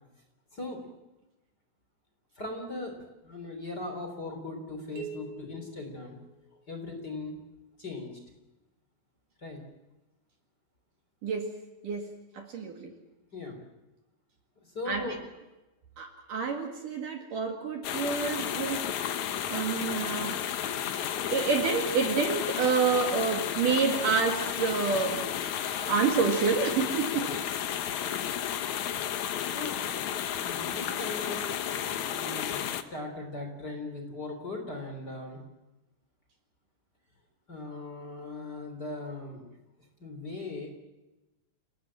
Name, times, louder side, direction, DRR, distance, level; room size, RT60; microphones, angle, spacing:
voice 1, 0.5-0.9 2.4-3.0 3.2-6.2 6.7-7.4 7.8-8.2 9.4-9.6 13.3-13.6 14.7-15.2 27.2-27.4 29.5-29.8 30.4-31.5 32.1-35.4 37.5-39.5 40.0-40.7, left 2 dB, 25° left, 4 dB, 3.7 m, -39 dB
sound 1, 5.0-6.9, right 4 dB, 85° right, 5.9 m, -45 dB
voice 2, 11.2-11.5 11.8-12.1 12.3-12.9 14.9-15.1 16.0-18.8 19.5-20.4 21.0-25.2 25.8-27.3 27.8-27.9, right 5 dB, 55° right, 3 dB, 3.3 m, -28 dB
sound 2, 17.8-32.8, left 10 dB, 75° left, 1.7 m, -32 dB
28.5 x 18.5 x 7.6 m, 1.0 s
omnidirectional pair, 5.0 m